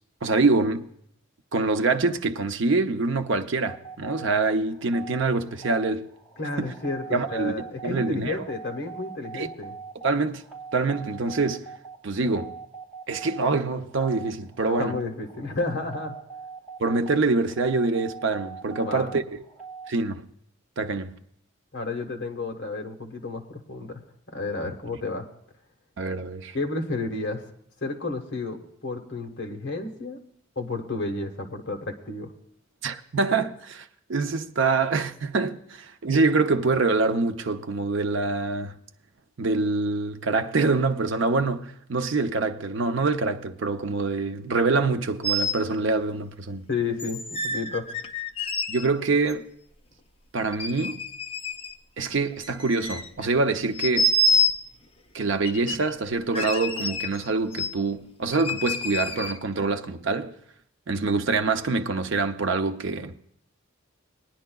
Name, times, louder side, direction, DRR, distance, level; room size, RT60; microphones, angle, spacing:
voice 1, 0.2-0.9 1.5-6.1 6.6-6.7 7.1-7.6 7.8-8.4 9.3-9.5 10.0-10.4 10.7-11.7 12.0-12.6 13.1-15.0 16.8-19.2 19.9-20.3 20.8-21.2 26.0-26.6 32.8-38.8 39.4-46.7 48.7-49.5 50.3-51.0 52.0-54.1 55.1-60.4 60.9-63.1, right 3 dB, 60° right, 0.6 m, -25 dB
sound 1, 3.6-19.9, right 5 dB, 5° right, 3.0 m, -42 dB
voice 2, 6.4-9.7 14.8-16.1 18.8-19.1 21.7-24.0 24.3-25.3 26.5-27.4 27.8-30.2 30.5-32.3 46.7-47.8, left 3 dB, 60° left, 1.4 m, -31 dB
sound 2, 45.2-45.6 47.0-48.9 49.3-49.4 50.4-51.7 52.3-53.3 53.7-54.6 55.4-55.9 56.3-57.3 57.5-57.7 58.3-59.4, left 1 dB, 30° left, 0.6 m, -27 dB
21.0 x 10.0 x 2.3 m
head